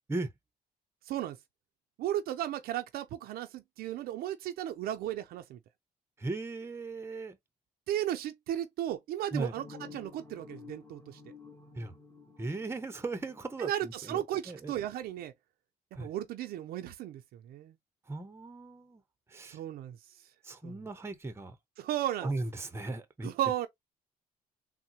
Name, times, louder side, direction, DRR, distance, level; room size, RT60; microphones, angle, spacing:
voice 1, 1.1-1.4 2.0-5.6 7.9-9.7 9.9-11.2 13.6-15.3 15.9-17.7 19.5-20.0 20.6-20.8 21.8-22.3 23.2-23.7, right 12 dB, 75° right, 0.4 m, -35 dB
voice 2, 6.2-7.4 9.3-9.5 11.7-11.9 12.4-14.7 16.0-16.1 18.1-19.0 19.3-19.6 20.4-21.5 22.2-23.3, right 2 dB, 15° right, 0.7 m, -37 dB
sound 1, 9.5-14.3, left 4 dB, 15° left, 1.2 m, -52 dB
3.6 x 2.1 x 2.7 m
cardioid pair, 95°, 16 cm